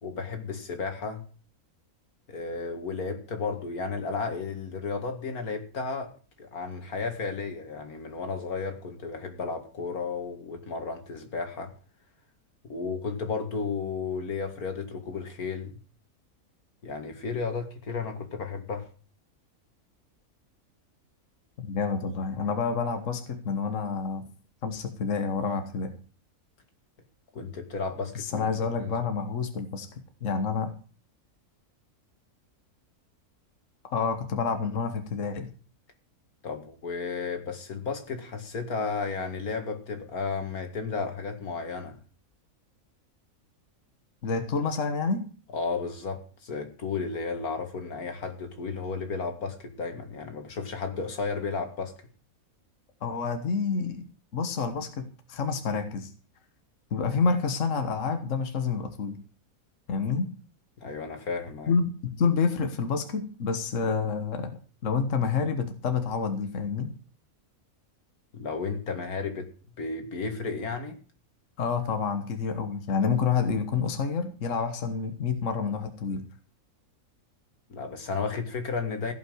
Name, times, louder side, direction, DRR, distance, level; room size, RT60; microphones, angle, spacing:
voice 1, 0.0-1.2 2.3-11.7 12.6-15.8 16.8-18.9 27.3-28.9 36.4-42.0 45.5-51.9 60.8-61.7 68.3-69.5 69.8-71.0 77.7-79.1, left 4 dB, 85° left, 2.6 m, -33 dB
voice 2, 21.6-24.2 24.6-25.9 28.2-29.9 30.2-30.7 33.8-35.5 44.2-45.2 53.0-54.0 54.3-56.1 56.9-59.2 59.9-60.3 61.7-66.9 71.6-76.2, left 5 dB, 60° left, 1.7 m, -28 dB
16.0 x 5.7 x 7.9 m
omnidirectional pair, 1.5 m